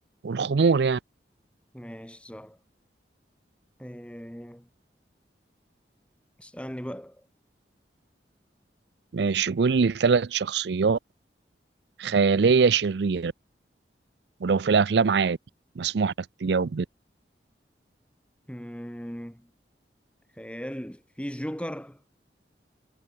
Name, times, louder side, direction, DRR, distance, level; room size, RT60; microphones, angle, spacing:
voice 1, 0.2-1.0 9.1-11.0 12.0-13.3 14.4-15.4 15.8-16.1 16.4-16.9, right 5 dB, 75° right, 0.5 m, -22 dB
voice 2, 1.7-2.6 3.8-4.7 6.4-7.3 18.5-19.5 20.3-22.0, equal, 5° left, 2.9 m, -38 dB
head